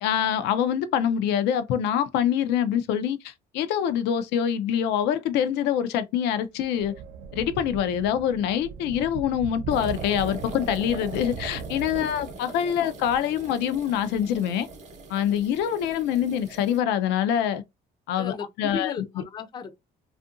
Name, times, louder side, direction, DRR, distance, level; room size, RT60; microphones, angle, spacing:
voice 1, 0.0-6.9 7.3-14.7 15.1-17.6 18.1-18.9, left 9 dB, 85° left, 0.4 m, -25 dB
sound 1, 6.6-12.7, right 7 dB, 75° right, 0.4 m, -39 dB
sound 2, 9.7-16.8, right 3 dB, 45° right, 0.7 m, -41 dB
voice 2, 18.2-19.7, left 6 dB, 25° left, 0.4 m, -35 dB
2.6 x 2.4 x 2.5 m
cardioid pair, 110°, 17 cm